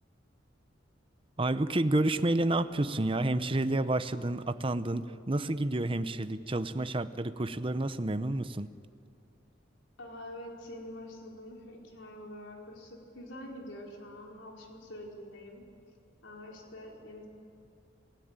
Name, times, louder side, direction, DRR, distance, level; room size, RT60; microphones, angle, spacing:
voice 1, 1.4-8.7, right 2 dB, 30° right, 11 dB, 0.8 m, -29 dB
voice 2, 10.0-15.6 16.2-17.3, left 1 dB, 75° left, 0 dB, 4.6 m, -46 dB
28.5 x 16.5 x 9.0 m, 2.5 s
head